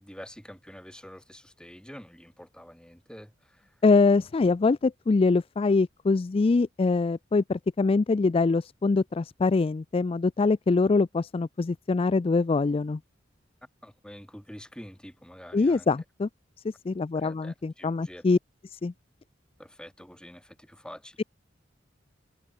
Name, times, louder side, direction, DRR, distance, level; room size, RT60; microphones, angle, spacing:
voice 1, 0.0-3.7 13.8-15.9 17.1-18.2 19.6-21.2, equal, 5° left, 3.8 m, -47 dB
voice 2, 3.8-13.0 15.5-16.3 16.6-18.4 18.7-18.9, left 3 dB, 30° left, 0.3 m, -24 dB
head